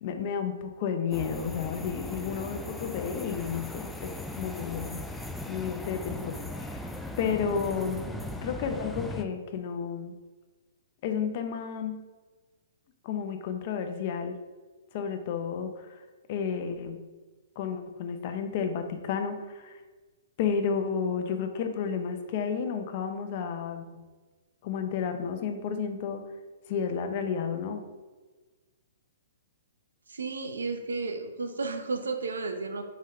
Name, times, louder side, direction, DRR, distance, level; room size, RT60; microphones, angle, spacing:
voice 1, 0.0-5.1 5.5-6.9 7.2-10.2 11.0-12.0 13.0-14.4 14.9-16.0 16.3-17.0 17.6-19.8 20.4-24.0 24.6-26.2 26.7-27.8, left 6 dB, 45° left, 7 dB, 0.7 m, -32 dB
sound 1, 1.1-9.2, left 1 dB, 5° left, 0.4 m, -38 dB
voice 2, 30.1-32.8, right 3 dB, 85° right, 6 dB, 0.8 m, -33 dB
4.8 x 3.7 x 5.4 m, 1.3 s
hypercardioid pair, 130°, 0 cm